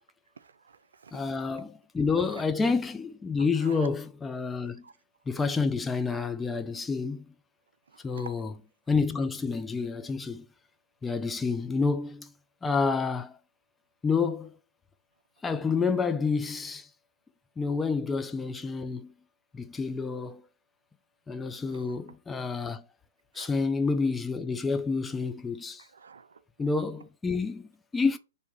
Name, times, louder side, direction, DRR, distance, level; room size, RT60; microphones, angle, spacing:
voice 1, 0.4-1.2 2.1-2.4 3.6-3.9 4.8-4.9 7.9-8.3 21.7-21.8 23.4-23.5 25.8-26.4, right 5 dB, 70° right, 0.4 m, -48 dB
voice 2, 1.1-4.8 5.3-7.2 8.0-8.5 8.9-10.5 11.0-12.3 12.6-13.4 14.0-14.6 15.4-16.9 17.6-19.1 19.5-20.4 21.3-22.8 23.3-25.9 26.6-28.2, left 4 dB, 10° left, 0.4 m, -29 dB
3.5 x 2.7 x 4.6 m
figure-of-eight pair, 115°, 0 cm